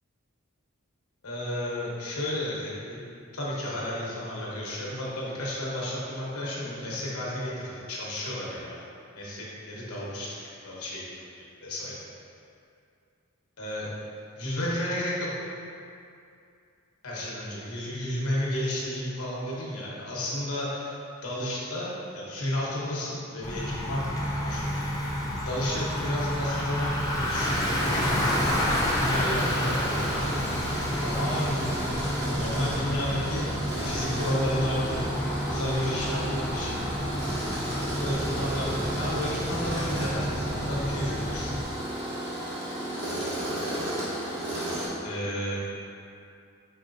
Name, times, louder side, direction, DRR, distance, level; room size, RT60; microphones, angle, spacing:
voice 1, 1.2-3.1 3.3-8.8 9.1-10.4 10.6-11.0 11.4-11.9 13.6-13.9 14.4-15.3 17.0-24.1 24.4-24.9 25.4-26.9 27.1-27.5 28.7-30.4 31.0-31.7 32.3-33.5 33.8-35.1 35.5-36.7 38.0-41.5 45.0-45.6, left 1 dB, 85° left, -5 dB, 1.0 m, -32 dB
Bicycle, 23.4-41.6, equal, 15° left, 0.5 m, -30 dB
Tools, 27.3-44.9, right 1 dB, 55° right, 1.2 m, -33 dB
5.2 x 3.9 x 2.6 m, 2.4 s
head